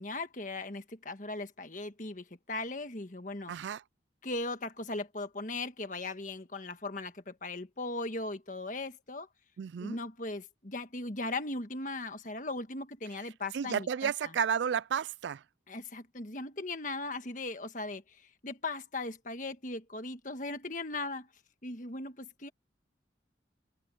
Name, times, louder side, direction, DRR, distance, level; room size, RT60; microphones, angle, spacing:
voice 1, 0.0-3.5 4.2-9.3 9.8-14.3 15.7-21.3 21.6-22.5, left 2 dB, 45° left, 1.6 m, -38 dB
voice 2, 3.5-3.8 9.6-10.0 13.5-15.4, right 7 dB, 70° right, 0.3 m, -32 dB
head